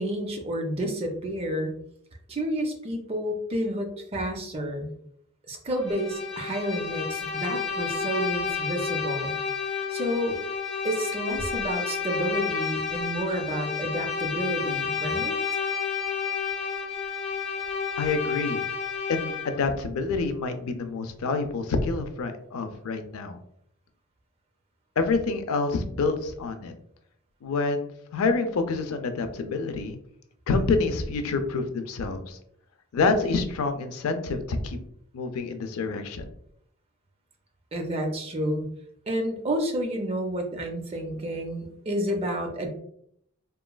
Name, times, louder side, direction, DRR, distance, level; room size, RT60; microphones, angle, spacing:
voice 1, 0.0-1.7 2.3-4.9 5.5-9.3 9.9-10.4 10.8-15.3 37.7-38.6 39.1-42.7, equal, 30° right, 3 dB, 0.4 m, -30 dB
Bowed string instrument, 5.8-19.7, left 6 dB, ahead, 1.0 m, -30 dB
voice 2, 18.0-18.6 19.1-23.4 25.0-26.7 27.4-30.0 30.5-32.4 32.9-34.8 35.1-36.3, left 3 dB, 75° left, 8 dB, 0.4 m, -27 dB
3.0 x 2.3 x 2.2 m, 0.71 s
head